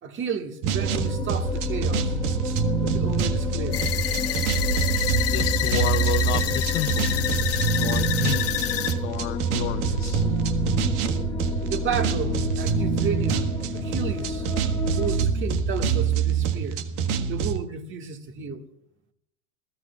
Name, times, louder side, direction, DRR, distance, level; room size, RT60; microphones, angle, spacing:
voice 1, 0.0-2.1 2.8-3.9 11.6-16.8 17.3-18.7, right 6 dB, 30° right, 1.7 m, -32 dB
sound 1, 0.6-17.6, right 7 dB, 60° right, 1.6 m, -26 dB
sound 2, 0.8-15.2, left 4 dB, 10° left, 1.2 m, -30 dB
sound 3, 3.7-8.9, left 12 dB, 35° left, 1.2 m, -28 dB
voice 2, 5.3-7.1 7.7-8.6 9.0-10.2, left 16 dB, 60° left, 0.7 m, -31 dB
28.5 x 14.0 x 2.3 m
hypercardioid pair, 105°, 39 cm